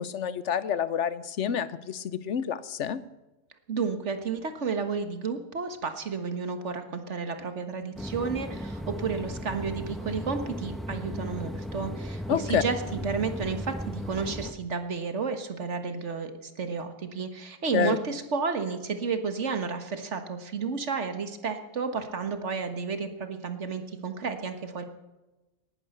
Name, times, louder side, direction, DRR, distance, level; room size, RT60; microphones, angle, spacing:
voice 1, 0.0-3.0 12.3-12.6 17.7-18.0, left 8 dB, 70° left, 16 dB, 1.0 m, -28 dB
voice 2, 3.7-24.8, right 5 dB, 65° right, 8 dB, 1.8 m, -32 dB
sound 1, 7.9-14.5, equal, ahead, 1.0 m, -36 dB
18.5 x 11.0 x 6.6 m, 1.1 s
omnidirectional pair, 1.3 m